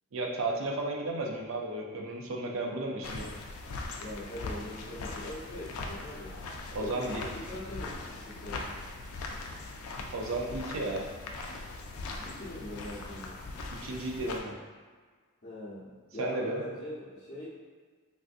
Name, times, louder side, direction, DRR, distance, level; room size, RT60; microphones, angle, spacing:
voice 1, 0.1-3.3 6.7-7.2 10.1-11.1 13.8-14.6 16.2-16.6, right 2 dB, 65° right, 0 dB, 0.5 m, -33 dB
sound 1, 3.0-14.4, left 3 dB, 75° left, 0.4 m, -40 dB
voice 2, 4.0-6.4 6.8-8.9 12.2-13.4 15.4-17.5, left 1 dB, 35° left, -11 dB, 0.7 m, -42 dB
3.3 x 2.5 x 2.5 m, 1.5 s
head